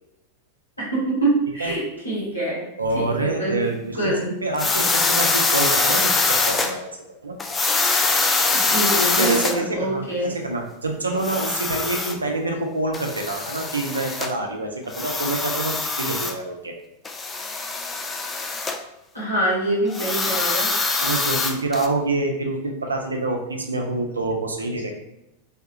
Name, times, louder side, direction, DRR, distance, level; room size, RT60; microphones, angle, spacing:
voice 1, 0.8-2.6 2.9-3.6 3.9-4.4 8.5-10.3 19.1-20.7, right 1 dB, 85° left, -7 dB, 1.5 m, -25 dB
voice 2, 2.8-7.0 7.2-7.4 9.2-16.7 21.0-24.9, right 2 dB, 75° right, 2 dB, 0.5 m, -26 dB
sound 1, 4.6-6.7 7.4-9.6 11.1-12.1 12.9-14.3 14.9-16.3 17.0-18.8 19.9-21.9, left 3 dB, 15° left, 0.3 m, -23 dB
3.4 x 2.3 x 2.8 m, 0.89 s
figure-of-eight pair, 90°, 0 cm